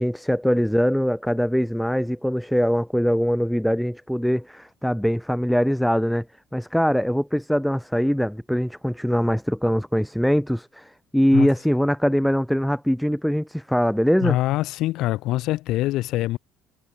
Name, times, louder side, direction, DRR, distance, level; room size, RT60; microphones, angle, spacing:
voice 1, 0.0-6.2 6.5-14.4, equal, ahead, 1.5 m, -22 dB
voice 2, 14.2-16.4, left 16 dB, 65° left, 0.9 m, -24 dB
cardioid pair, 160°, 0 cm